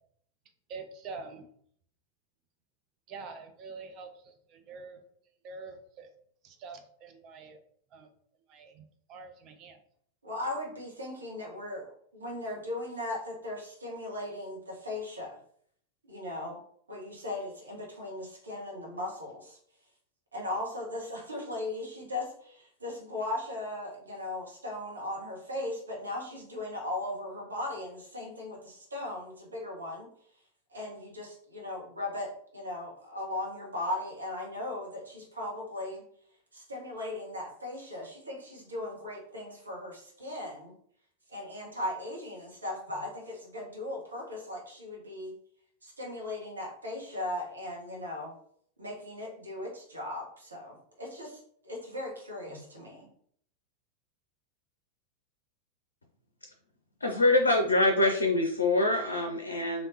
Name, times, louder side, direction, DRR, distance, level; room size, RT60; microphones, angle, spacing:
voice 1, 0.7-1.5 3.1-5.0 5.4-6.1 6.4-7.6 7.9-8.1 8.5-9.8, right 4 dB, 35° right, 7 dB, 0.6 m, -45 dB
voice 2, 10.2-15.4 16.1-16.6 16.9-19.6 20.3-30.1 30.7-36.0 36.5-40.7 41.3-45.3 45.8-48.3 48.8-51.4 51.6-53.1, left 1 dB, 75° right, -2 dB, 1.2 m, -38 dB
voice 3, 57.0-59.9, left 2 dB, 75° left, 3 dB, 0.5 m, -25 dB
3.4 x 2.7 x 2.8 m, 0.63 s
figure-of-eight pair, 90°, 0 cm